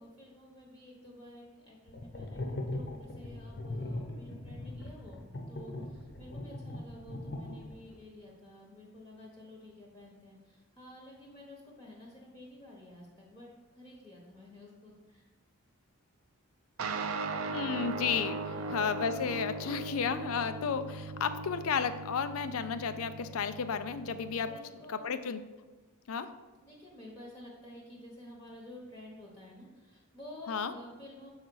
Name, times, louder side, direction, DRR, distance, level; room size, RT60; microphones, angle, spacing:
voice 1, 0.0-5.2 5.5-13.5 13.7-15.3 18.5-18.8 24.4-25.1 26.6-31.3, left 1 dB, 15° left, -4 dB, 0.9 m, -51 dB
sound 1, 1.9-8.0, left 1 dB, 50° left, 0.9 m, -39 dB
sound 2, 16.8-24.6, right 3 dB, 80° right, 0.5 m, -39 dB
voice 2, 17.5-24.5 24.9-25.4 26.1-26.3 30.5-30.7, left 6 dB, 75° left, 11 dB, 0.4 m, -33 dB
7.3 x 4.0 x 4.6 m, 1.2 s
head